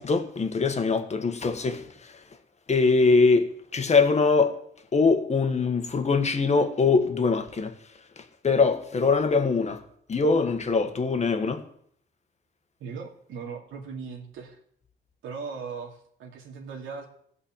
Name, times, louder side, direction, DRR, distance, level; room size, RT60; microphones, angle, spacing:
voice 1, 0.0-2.2 2.7-4.6 4.9-7.8 8.2-9.8 10.1-11.7, left 4 dB, 35° left, 1.5 m, -23 dB
voice 2, 12.8-14.6 15.2-17.1, right 5 dB, 80° right, 2.6 m, -38 dB
15.5 x 5.6 x 7.4 m
cardioid pair, 90°, 20 cm